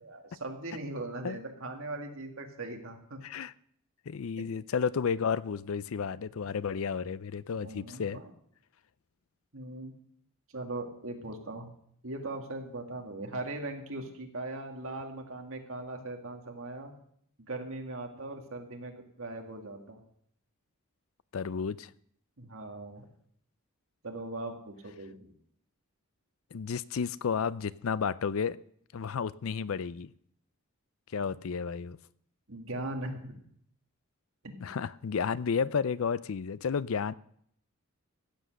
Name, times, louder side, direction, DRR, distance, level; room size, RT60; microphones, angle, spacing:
voice 1, 0.0-3.2 4.4-4.5 7.6-8.3 9.5-9.9 10.5-11.7 12.0-16.9 17.5-20.0 22.4-23.1 24.0-25.3 32.5-33.4 34.4-34.8, right 2 dB, 65° right, 3 dB, 2.1 m, -40 dB
voice 2, 3.2-3.5 4.1-8.2 21.3-21.9 26.5-28.6 28.9-30.1 31.1-32.0 34.6-37.1, left 6 dB, 65° left, 18 dB, 0.4 m, -32 dB
15.5 x 8.0 x 6.4 m, 0.67 s
head